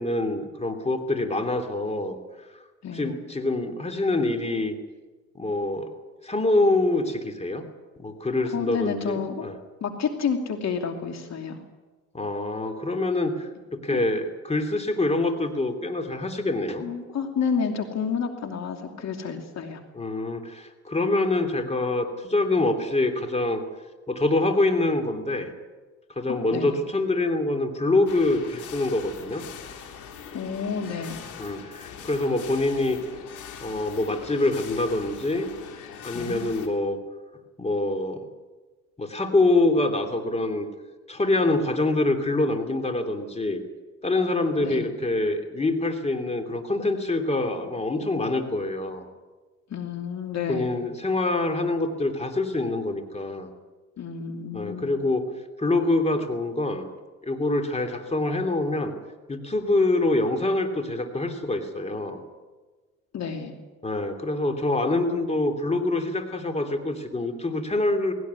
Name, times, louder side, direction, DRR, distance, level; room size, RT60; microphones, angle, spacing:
voice 1, 0.0-2.2 2.9-4.7 5.4-5.9 6.2-7.6 8.0-9.5 12.1-16.9 19.9-23.6 24.1-25.5 26.1-29.4 31.4-33.0 33.6-35.5 36.0-37.0 37.6-38.2 39.0-40.7 41.1-43.6 44.0-49.1 50.5-53.5 54.5-55.3 55.6-56.9 57.2-58.9 59.3-62.2 63.8-68.1, left 2 dB, 20° left, 5 dB, 2.9 m, -25 dB
voice 2, 2.8-3.1 8.5-9.5 9.8-11.6 13.9-14.0 16.8-19.8 26.3-26.7 30.3-31.2 36.1-36.4 44.6-44.9 49.7-50.7 54.0-55.0 63.1-63.5, left 6 dB, 60° left, 5 dB, 2.8 m, -30 dB
sound 1, 28.1-36.7, left 7 dB, 80° left, 3.4 m, -41 dB
19.5 x 17.5 x 9.6 m, 1.3 s
cardioid pair, 90°, 30 cm